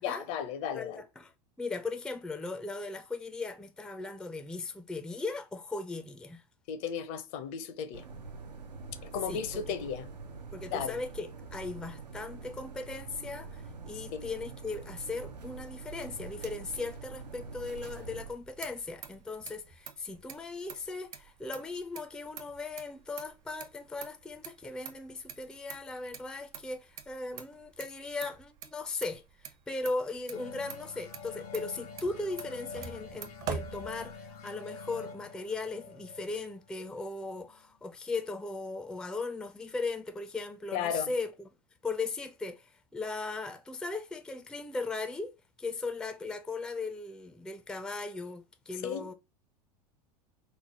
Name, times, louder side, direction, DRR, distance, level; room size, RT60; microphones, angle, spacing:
voice 1, 0.0-1.0 6.7-8.0 9.0-10.1 10.7-11.0 14.1-14.3 40.7-41.1 48.8-49.1, left 8 dB, 50° left, 0.6 m, -35 dB
voice 2, 0.7-1.3 1.6-6.4 9.3-9.6 10.5-41.5 41.8-49.1, left 3 dB, 5° left, 0.4 m, -38 dB
sound 1, 7.9-18.3, right 4 dB, 85° right, 0.5 m, -45 dB
Motor vehicle (road), 18.2-34.5, right 7 dB, 45° right, 0.7 m, -46 dB
sound 2, 30.3-37.6, left 5 dB, 75° left, 0.9 m, -46 dB
3.1 x 2.0 x 3.9 m
hypercardioid pair, 85°, 21 cm